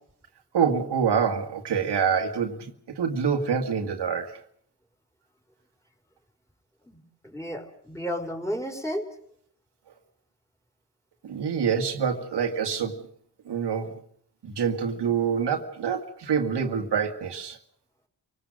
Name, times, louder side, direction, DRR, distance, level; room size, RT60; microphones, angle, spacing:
voice 1, 0.5-4.4 11.2-13.0 13.5-13.9 14.4-17.6, right 6 dB, 85° right, 2.1 m, -26 dB
voice 2, 6.9-9.1, equal, 5° left, 4.7 m, -33 dB
29.0 x 18.5 x 6.4 m
cardioid pair, 70°, 40 cm